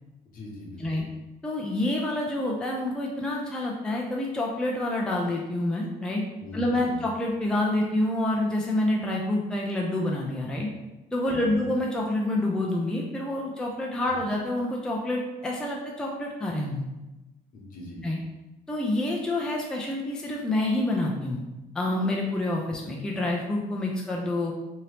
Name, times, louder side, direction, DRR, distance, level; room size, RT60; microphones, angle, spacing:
voice 1, 0.2-1.0 6.4-7.0 11.3-11.6 14.0-14.2 17.5-18.0, left 2 dB, 55° left, -2 dB, 1.0 m, -42 dB
voice 2, 1.4-6.2 6.5-10.7 11.1-16.8 18.0-18.2 18.7-21.4 21.7-24.5, left 1 dB, 5° left, -2 dB, 0.4 m, -27 dB
2.8 x 2.6 x 3.2 m, 1.0 s
cardioid pair, 110°, 17 cm